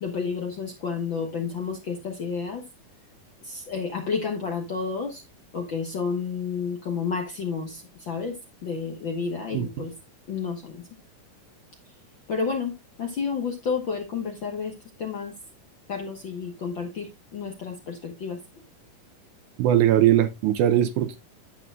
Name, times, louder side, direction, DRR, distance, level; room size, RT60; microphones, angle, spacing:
voice 1, 0.0-2.6 3.4-5.2 5.5-9.9 10.3-10.8 12.3-15.3 15.9-18.4, left 5 dB, 55° left, 1.3 m, -31 dB
voice 2, 19.6-21.2, right 11 dB, 75° right, 1.9 m, -20 dB
11.0 x 8.5 x 2.4 m
omnidirectional pair, 3.8 m